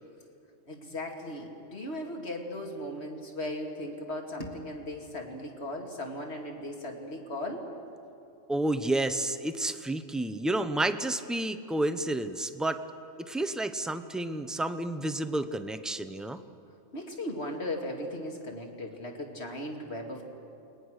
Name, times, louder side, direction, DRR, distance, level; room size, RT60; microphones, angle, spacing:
voice 1, 0.7-7.7 16.9-20.2, left 1 dB, 60° left, 1 dB, 2.7 m, -37 dB
sound 1, 4.4-7.3, left 1 dB, 40° left, 2.1 m, -50 dB
voice 2, 8.5-12.8 13.3-16.4, right 1 dB, ahead, 10 dB, 0.5 m, -30 dB
29.0 x 20.5 x 6.5 m, 2.7 s
omnidirectional pair, 1.3 m